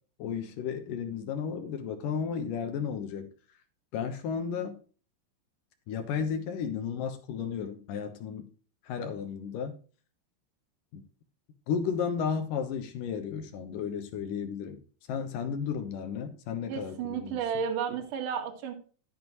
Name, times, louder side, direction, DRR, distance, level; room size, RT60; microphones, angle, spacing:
voice 1, 0.2-3.3 3.9-4.8 5.9-8.5 8.8-9.8 10.9-11.0 11.7-14.8 15.1-17.4, left 7 dB, 80° left, 6 dB, 1.9 m, -33 dB
voice 2, 16.7-18.7, right 7 dB, 55° right, 4 dB, 2.7 m, -32 dB
12.5 x 7.7 x 3.1 m, 0.38 s
omnidirectional pair, 5.6 m